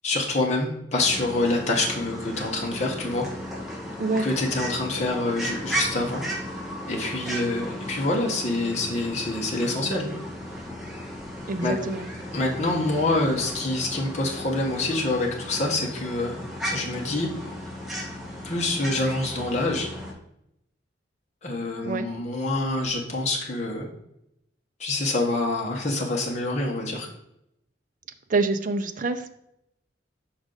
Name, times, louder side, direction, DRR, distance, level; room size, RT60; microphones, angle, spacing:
voice 1, 0.0-3.3 4.1-6.2 6.9-10.1 11.6-11.7 12.3-16.4 16.7-17.3 18.4-19.9 21.4-23.9 24.8-27.1, left 2 dB, 40° left, -2 dB, 1.1 m, -26 dB
sound 1, 1.0-20.1, equal, ahead, 1.3 m, -35 dB
voice 2, 11.5-12.1 21.8-22.1 28.3-29.2, right 3 dB, 45° right, 8 dB, 0.5 m, -26 dB
6.1 x 4.9 x 3.9 m, 0.80 s
head